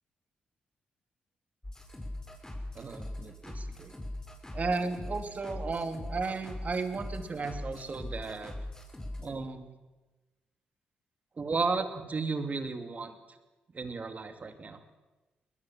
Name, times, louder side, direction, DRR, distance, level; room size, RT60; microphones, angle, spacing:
sound 1, 1.6-9.3, left 1 dB, 15° left, 5.9 m, -41 dB
voice 1, 2.7-4.0 4.5-8.5 9.2-9.7 11.4-13.1 13.7-14.8, right 4 dB, 45° right, 7 dB, 2.8 m, -34 dB
21.0 x 20.5 x 7.5 m, 1.2 s
supercardioid pair, 50°, 4 cm